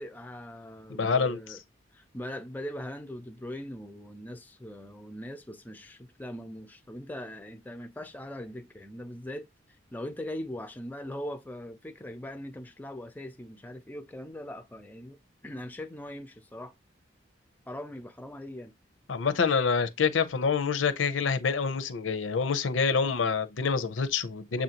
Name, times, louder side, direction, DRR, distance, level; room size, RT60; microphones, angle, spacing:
voice 1, 0.0-1.6 1.9-9.5 9.9-15.2 15.4-16.7 17.7-18.7, left 1 dB, 10° left, 0.4 m, -40 dB
voice 2, 0.9-1.6 19.1-24.6, left 5 dB, 75° left, 0.6 m, -27 dB
7.1 x 2.5 x 2.8 m
head